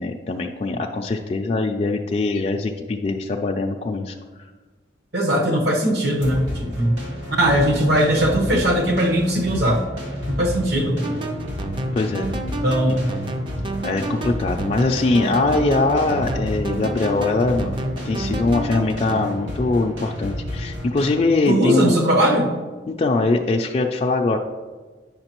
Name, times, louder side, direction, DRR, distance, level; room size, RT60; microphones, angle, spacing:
voice 1, 0.0-4.2 11.9-12.3 12.9-13.0 13.8-17.7 18.0-22.0 22.9-24.4, left 3 dB, 35° left, 1 dB, 0.3 m, -22 dB
voice 2, 5.1-7.0 7.3-9.8 10.3-11.1 12.6-13.1 21.5-22.5, equal, 60° right, 1 dB, 1.1 m, -19 dB
sound 1, 6.2-21.1, left 1 dB, 85° right, 1.8 m, -31 dB
sound 2, 11.0-19.3, right 2 dB, 25° right, 0.4 m, -30 dB
8.7 x 5.8 x 3.0 m, 1.4 s
head